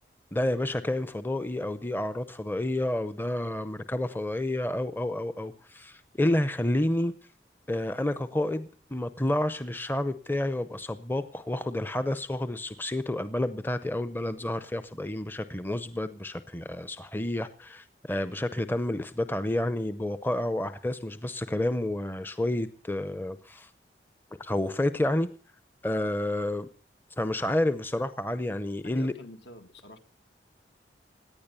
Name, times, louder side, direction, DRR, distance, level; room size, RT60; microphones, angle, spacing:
voice 1, 0.3-7.1 7.7-23.7 24.4-25.3 25.8-26.7 27.2-29.1, left 1 dB, 10° left, 12 dB, 0.6 m, -30 dB
voice 2, 28.8-30.0, left 1 dB, 70° left, 7 dB, 1.9 m, -46 dB
18.0 x 10.5 x 6.9 m, 0.43 s
head